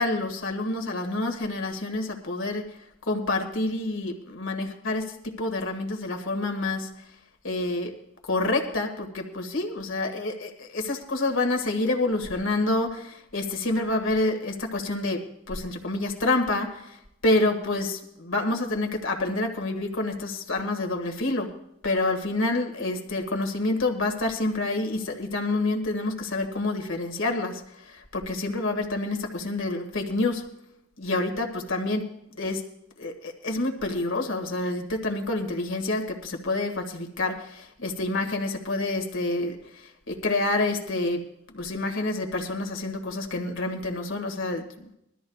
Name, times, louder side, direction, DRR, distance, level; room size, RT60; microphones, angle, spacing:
voice 1, 0.0-2.6 3.1-6.9 7.4-7.9 8.3-15.2 15.5-16.7 17.2-21.5 21.8-27.6 28.1-30.4 31.0-32.0 32.4-32.6 33.0-39.6 40.1-41.2 41.5-44.6, left 2 dB, 70° left, 4 dB, 1.9 m, -27 dB
22.5 x 13.0 x 2.4 m, 0.77 s
head